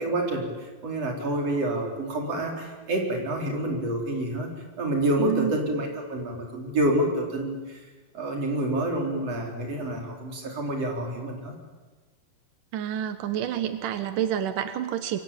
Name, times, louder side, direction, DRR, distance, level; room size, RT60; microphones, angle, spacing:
voice 1, 0.0-4.5 4.8-7.8 8.1-11.5, right 1 dB, 35° right, 1 dB, 5.2 m, -28 dB
voice 2, 5.2-5.6 12.7-15.2, right 10 dB, 75° right, 9 dB, 1.9 m, -28 dB
28.5 x 23.5 x 8.9 m, 1.3 s
omnidirectional pair, 5.4 m